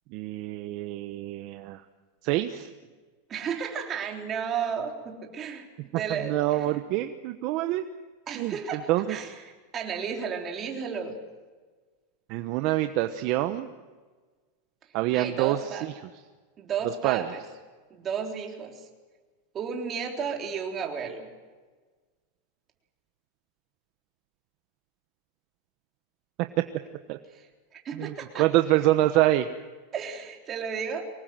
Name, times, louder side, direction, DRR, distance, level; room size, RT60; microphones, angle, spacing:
voice 1, 0.1-1.8 2.2-2.7 6.2-7.8 8.4-8.5 8.9-9.0 12.3-13.7 14.9-15.6 17.0-17.2 27.1-27.2 28.0-29.5, right 15 dB, 45° right, 8 dB, 1.1 m, -25 dB
voice 2, 3.3-5.7 6.0-6.8 8.3-11.2 15.1-15.9 16.6-17.5 17.9-18.9 19.5-21.3 27.3-28.5 29.9-31.1, right 6 dB, 25° right, 2 dB, 3.7 m, -33 dB
25.0 x 20.0 x 7.7 m, 1.4 s
supercardioid pair, 150°, 0 cm